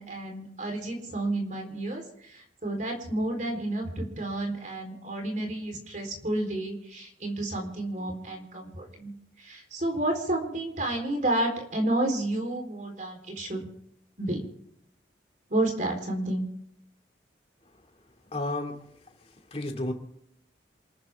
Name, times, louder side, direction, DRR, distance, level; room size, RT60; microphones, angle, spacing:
voice 1, 0.0-9.1 9.4-13.7 14.2-14.4 15.5-16.5, right 1 dB, 45° right, 2 dB, 4.1 m, -30 dB
voice 2, 18.3-18.7 19.5-19.9, left 1 dB, 35° left, 4 dB, 2.6 m, -31 dB
28.5 x 14.0 x 3.7 m, 0.73 s
head